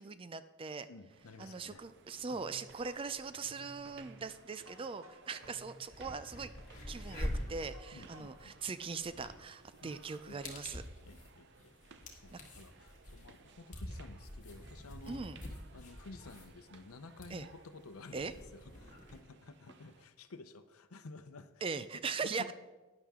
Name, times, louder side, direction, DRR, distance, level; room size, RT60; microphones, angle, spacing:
voice 1, 0.0-0.9 1.4-6.5 6.9-10.8 12.3-12.4 15.1-15.4 17.3-17.5 18.1-18.3 21.6-22.5, right 4 dB, 25° right, 13 dB, 0.3 m, -40 dB
voice 2, 0.8-1.8 2.3-2.4 7.9-8.6 9.8-10.0 10.3-10.4 11.1-11.7 12.1-15.2 15.7-21.9 22.2-22.5, left 3 dB, 85° left, 10 dB, 0.7 m, -53 dB
sound 1, 1.1-20.0, right 4 dB, 55° right, 0.7 m, -61 dB
sound 2, 2.0-8.6, equal, 80° right, 1.9 m, -58 dB
sound 3, 5.4-5.5 5.8-19.2, left 1 dB, 35° left, 1.7 m, -46 dB
11.5 x 9.8 x 3.6 m, 1.2 s
head